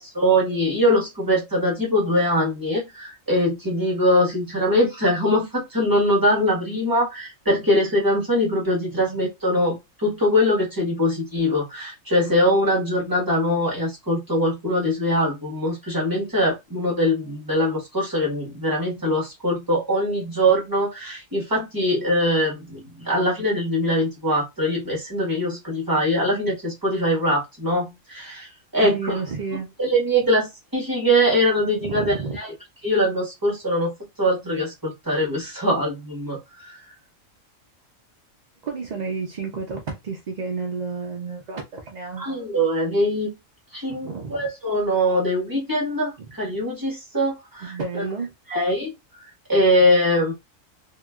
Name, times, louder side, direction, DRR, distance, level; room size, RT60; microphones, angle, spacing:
voice 1, 0.0-29.2 29.8-32.5 32.8-36.8 42.2-43.3 43.7-47.8 48.5-48.9 49.5-50.3, equal, 15° right, 1.4 m, -22 dB
voice 2, 28.8-29.7 31.8-32.4 38.6-42.4 43.9-44.5 46.2-46.3 47.6-48.3, right 4 dB, 55° right, 0.5 m, -31 dB
2.9 x 2.9 x 2.3 m
omnidirectional pair, 1.4 m